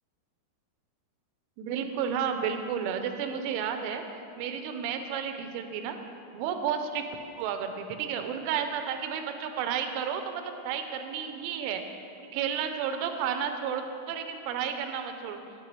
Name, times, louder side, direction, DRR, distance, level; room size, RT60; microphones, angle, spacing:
voice 1, 1.6-4.0 4.4-6.0 6.3-7.0 7.4-11.8 12.3-15.4, right 7 dB, 85° right, 6 dB, 3.0 m, -32 dB
10.5 x 8.2 x 3.0 m, 2.6 s
omnidirectional pair, 5.5 m